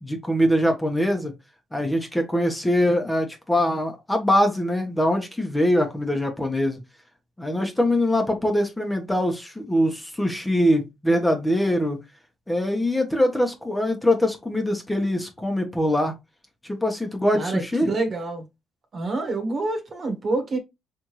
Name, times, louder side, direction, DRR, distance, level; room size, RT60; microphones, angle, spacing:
voice 1, 0.0-1.3 1.7-6.8 7.4-12.0 12.5-16.1 16.6-17.9, left 1 dB, 10° left, 1.2 m, -23 dB
voice 2, 17.3-18.4 18.9-20.6, right 3 dB, 45° right, 1.5 m, -27 dB
4.4 x 3.5 x 3.1 m
cardioid pair, 90°, 0 cm